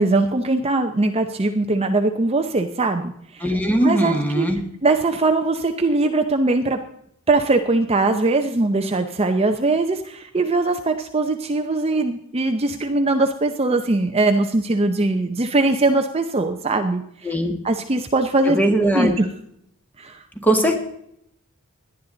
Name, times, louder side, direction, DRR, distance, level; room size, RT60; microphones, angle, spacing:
voice 1, 0.0-3.5 3.8-4.5 4.8-6.8 7.3-17.4 17.6-18.6 18.9-19.3 20.0-20.2, right 2 dB, 30° right, 6 dB, 0.7 m, -21 dB
voice 2, 3.4-4.6 17.3-17.5 18.5-19.1 20.4-20.8, right 1 dB, 10° left, 4 dB, 1.6 m, -19 dB
17.5 x 11.0 x 3.9 m, 0.72 s
head